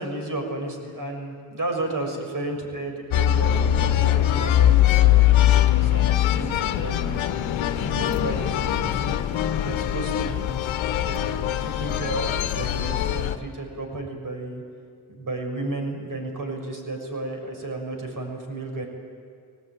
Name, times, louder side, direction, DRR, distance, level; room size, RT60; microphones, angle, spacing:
voice 1, 0.0-5.2 5.8-9.2 9.6-10.6 11.0-14.6 15.1-18.9, right 2 dB, 40° right, 2 dB, 6.5 m, -33 dB
sound 1, 3.1-13.4, left 12 dB, 65° left, 1.2 m, -22 dB
20.5 x 18.5 x 9.3 m, 2.2 s
hypercardioid pair, 50°, 50 cm